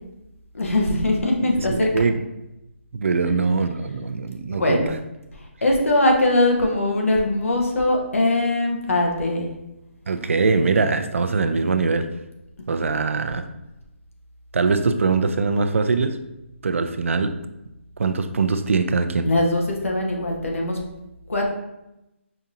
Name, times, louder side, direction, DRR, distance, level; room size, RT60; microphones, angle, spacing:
voice 1, 0.5-1.9 3.3-3.4 4.6-4.9 5.6-9.5 19.2-20.8 21.3-21.5, left 1 dB, 90° left, 1 dB, 1.0 m, -21 dB
voice 2, 1.6-2.3 2.9-5.0 10.1-12.1 12.7-13.4 14.5-16.2 16.6-17.3 18.0-19.3, right 4 dB, 75° right, 9 dB, 0.4 m, -22 dB
5.0 x 2.7 x 2.5 m, 0.93 s
hypercardioid pair, 175°, 7 cm